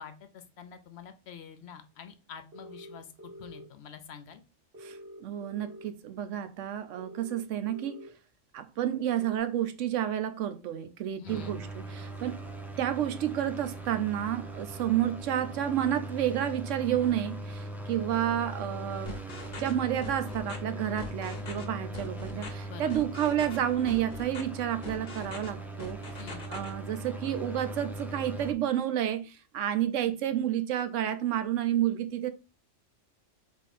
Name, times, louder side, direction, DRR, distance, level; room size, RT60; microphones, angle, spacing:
voice 1, 0.0-4.4 11.2-11.6 22.7-22.9 26.2-26.5, left 7 dB, 65° left, 0.8 m, -47 dB
sound 1, 2.5-3.6 4.7-5.9 7.0-8.1 9.2-9.4, equal, 50° right, 1.4 m, -46 dB
voice 2, 4.8-8.0 8.5-12.4 12.8-19.2 19.6-26.0 26.5-32.3, right 11 dB, 80° right, 1.0 m, -30 dB
sound 2, 11.3-28.5, right 1 dB, 5° right, 0.3 m, -40 dB
sound 3, 19.1-19.7 20.0-20.6 21.0-21.6 21.9-22.5 22.9-23.6 23.9-24.4 24.8-25.5 25.8-26.7, left 4 dB, 45° left, 1.0 m, -42 dB
3.7 x 3.5 x 4.1 m
omnidirectional pair, 1.3 m